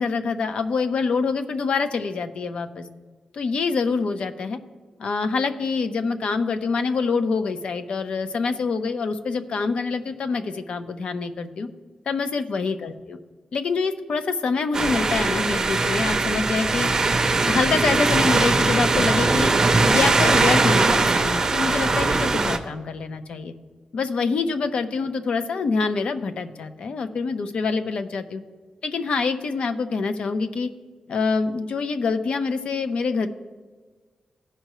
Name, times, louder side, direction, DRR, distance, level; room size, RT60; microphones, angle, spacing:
voice 1, 0.0-2.9 3.3-4.6 5.0-11.7 12.1-13.2 13.5-16.9 17.5-19.5 19.8-23.5 23.9-28.4 28.8-30.7 31.1-33.3, left 4 dB, 60° left, 9 dB, 0.6 m, -25 dB
sound 1, 14.7-22.6, right 3 dB, 25° right, 0.5 m, -20 dB
15.5 x 5.6 x 3.0 m, 1.4 s
wide cardioid pair, 175°, 2 cm